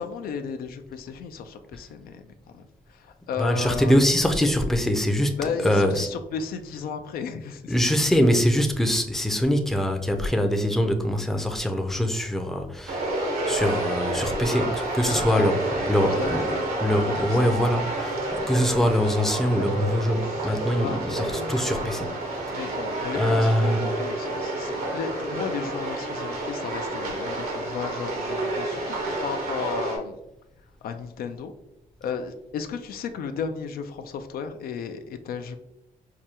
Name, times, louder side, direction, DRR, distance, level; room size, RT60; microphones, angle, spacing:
voice 1, 0.0-2.6 2.9-4.0 5.4-8.4 15.1-16.7 17.1-17.6 20.2-21.6 22.5-30.2 30.8-31.5 32.0-35.6, left 6 dB, 80° left, 8 dB, 0.4 m, -34 dB
voice 2, 3.4-6.1 7.7-15.6 15.9-16.4 16.8-22.1 23.2-23.8 29.1-29.2, equal, ahead, 4 dB, 0.4 m, -23 dB
sound 1, 12.9-30.0, right 2 dB, 90° right, 1.0 m, -29 dB
4.7 x 2.2 x 2.8 m, 0.88 s
cardioid pair, 95°, 15 cm